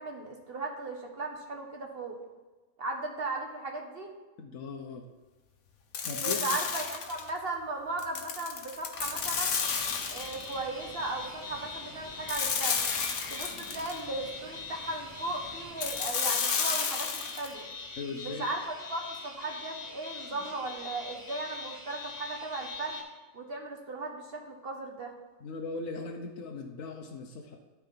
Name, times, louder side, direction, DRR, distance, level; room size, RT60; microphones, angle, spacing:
voice 1, 0.0-2.2 2.8-4.1 6.2-9.5 10.1-12.8 13.3-17.7 18.2-18.6 18.9-23.0 23.3-25.1, right 2 dB, 45° right, 2 dB, 1.5 m, -37 dB
voice 2, 4.4-5.1 6.0-6.6 18.0-18.5 25.4-27.6, left 3 dB, 65° left, 1 dB, 1.3 m, -38 dB
sound 1, 5.9-7.3 8.0-10.5 12.3-14.0 15.8-17.5, left 6 dB, 85° left, 1.4 m, -31 dB
sound 2, 9.0-16.1, equal, 20° left, 3.3 m, -49 dB
sound 3, 9.5-23.0, left 4 dB, 45° left, 1.8 m, -43 dB
12.5 x 4.8 x 5.7 m, 1.2 s
omnidirectional pair, 1.5 m